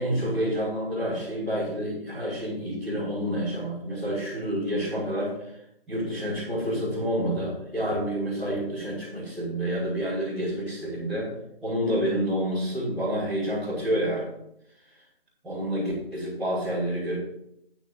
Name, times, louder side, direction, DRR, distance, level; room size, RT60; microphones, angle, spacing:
voice 1, 0.0-5.5 5.9-11.3 11.6-14.3 15.4-17.2, equal, ahead, -22 dB, 1.0 m, -28 dB
12.0 x 8.8 x 3.9 m, 0.78 s
figure-of-eight pair, 170°, 31 cm